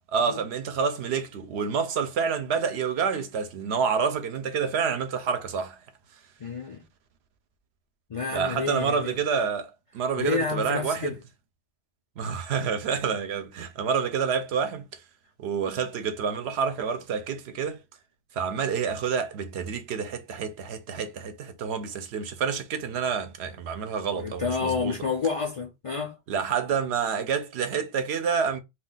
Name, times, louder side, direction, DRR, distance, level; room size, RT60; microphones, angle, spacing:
voice 1, 0.1-5.8 8.3-9.7 9.9-11.2 12.2-14.9 15.4-17.8 18.4-25.0 26.3-28.6, right 6 dB, 75° right, 0.8 m, -28 dB
voice 2, 6.4-6.8 8.1-9.2 10.2-11.2 24.1-26.2, left 5 dB, 50° left, 0.4 m, -29 dB
2.3 x 2.3 x 3.8 m
omnidirectional pair, 1.1 m